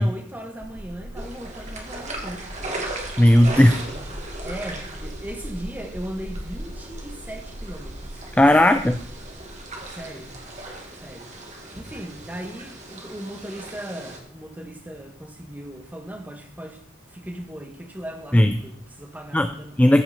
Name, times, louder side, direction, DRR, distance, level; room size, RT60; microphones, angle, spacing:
voice 1, 0.0-2.9 3.9-4.1 4.4-8.2 9.9-10.3 11.0-11.3 11.7-16.8 17.1-19.8, right 1 dB, 10° right, 1.3 m, -38 dB
sound 1, 0.6-12.6 12.9-13.0 13.4-13.5, equal, 55° right, 3.4 m, -40 dB
sound 2, 1.2-14.2, right 2 dB, 35° right, 2.1 m, -38 dB
voice 2, 3.2-4.0 8.4-9.0 18.3-18.5 19.3-19.5 19.8-20.0, left 1 dB, 5° left, 0.4 m, -16 dB
14.0 x 5.9 x 5.7 m
head